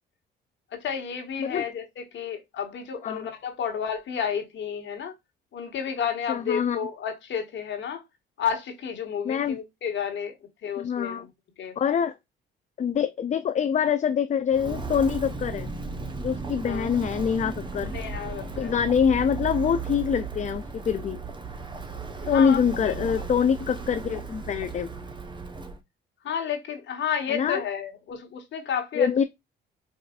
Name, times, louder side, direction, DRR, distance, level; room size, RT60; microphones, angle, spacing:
voice 1, 0.7-5.1 5.5-8.0 8.4-10.3 10.6-11.3 11.6-11.8 16.6-16.9 17.9-18.7 22.2-22.6 22.8-23.1 26.2-29.1, left 7 dB, 65° left, 1.4 m, -31 dB
voice 2, 6.3-6.8 9.2-9.6 10.8-11.3 11.8-12.2 12.8-15.7 16.2-17.9 18.6-21.2 22.3-24.9 27.3-27.6 28.9-29.2, left 7 dB, 35° left, 0.4 m, -25 dB
Walk footsteps, 14.5-25.8, right 4 dB, 25° right, 0.8 m, -35 dB
4.7 x 2.5 x 2.3 m
cardioid pair, 85°, 21 cm